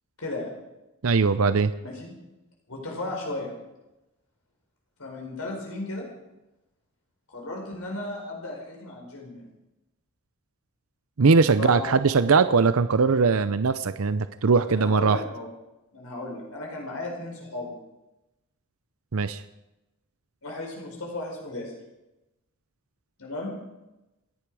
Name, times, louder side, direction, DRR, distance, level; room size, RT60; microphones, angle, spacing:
voice 1, 0.2-0.5 1.8-2.1 2.7-3.5 5.0-6.1 7.3-9.5 11.6-11.9 14.6-15.5 15.9-17.8 20.4-21.7 23.2-23.5, left 2 dB, 80° left, -1 dB, 4.7 m, -35 dB
voice 2, 1.0-1.7 11.2-15.2 19.1-19.4, right 4 dB, 75° right, 12 dB, 0.6 m, -20 dB
27.5 x 10.5 x 4.8 m, 0.96 s
head